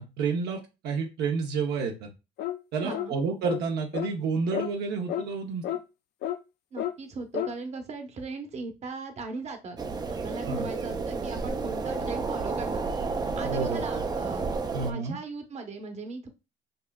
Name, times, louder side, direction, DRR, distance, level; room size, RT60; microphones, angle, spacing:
voice 1, 0.0-2.1 2.7-5.6 10.5-10.7 13.4-14.0 14.7-15.2, right 5 dB, 80° right, 2 dB, 0.8 m, -30 dB
sound 1, 2.4-2.6 2.9-3.1 3.4-3.6 3.9-4.1 4.5-4.7 5.1-5.2 5.6-5.8 6.2-6.4 6.8-6.9 7.3-7.5, left 11 dB, 75° left, 0.5 m, -31 dB
voice 2, 2.8-3.1 6.7-9.8 10.2-12.8 13.3-14.5 14.8-16.3, right 3 dB, 40° right, 5 dB, 0.9 m, -38 dB
sound 2, 9.8-14.9, right 4 dB, 25° right, 0.5 m, -31 dB
5.3 x 2.5 x 2.3 m, 0.27 s
cardioid pair, 110°, 17 cm